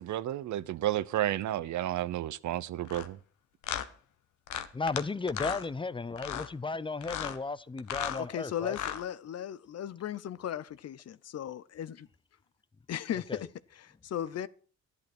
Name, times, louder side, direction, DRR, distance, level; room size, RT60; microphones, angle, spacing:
voice 1, 0.0-3.2, right 13 dB, 70° right, 0.8 m, -32 dB
sound 1, 2.9-3.1 3.6-3.9 4.5-5.0 5.3-5.6 6.2-6.5 7.0-7.4 7.8-8.2 8.7-9.0, left 10 dB, 80° left, 1.3 m, -35 dB
voice 2, 4.7-8.8 13.3-13.4, left 3 dB, 15° left, 0.6 m, -34 dB
voice 3, 8.1-12.0 12.9-14.5, left 10 dB, 55° left, 0.8 m, -37 dB
11.5 x 11.0 x 6.1 m
cardioid pair, 90°, 30 cm